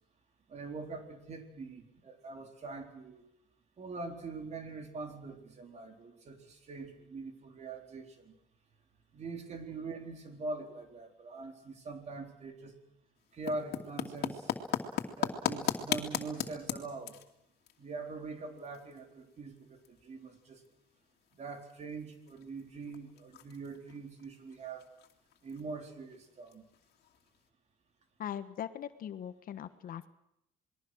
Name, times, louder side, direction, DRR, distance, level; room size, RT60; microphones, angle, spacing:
voice 1, 0.5-3.3 3.8-8.3 9.1-12.8 13.3-14.5 15.2-17.2 17.8-20.6 21.4-24.9 25.4-26.6, right 3 dB, 40° right, 4 dB, 4.1 m, -43 dB
sound 1, 13.2-27.5, left 10 dB, 70° left, 2.6 m, -41 dB
voice 2, 28.2-30.1, left 10 dB, 55° left, 11 dB, 1.4 m, -40 dB
27.5 x 21.0 x 6.4 m, 0.79 s
cardioid pair, 110°, 17 cm